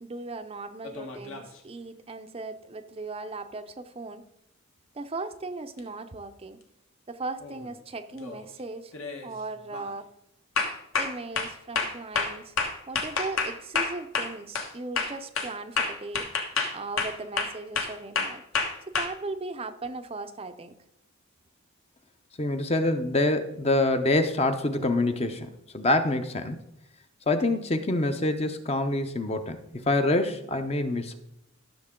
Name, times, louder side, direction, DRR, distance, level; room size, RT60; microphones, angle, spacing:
voice 1, 0.0-4.2 4.9-6.6 7.1-8.9 9.2-10.1 10.9-12.6 12.9-16.3 16.7-18.4 18.9-20.8, right 3 dB, 25° right, 8 dB, 0.5 m, -38 dB
sound 1, 0.8-1.6 5.8-5.9 7.4-7.7 8.1-8.5 8.9-9.3 9.7-9.9 10.6-14.7 15.0-19.1, left 4 dB, 65° left, 1.4 m, -29 dB
voice 2, 22.4-26.6 27.3-29.6 29.9-31.2, left 2 dB, 25° left, 8 dB, 0.7 m, -25 dB
14.0 x 6.7 x 3.7 m, 0.82 s
head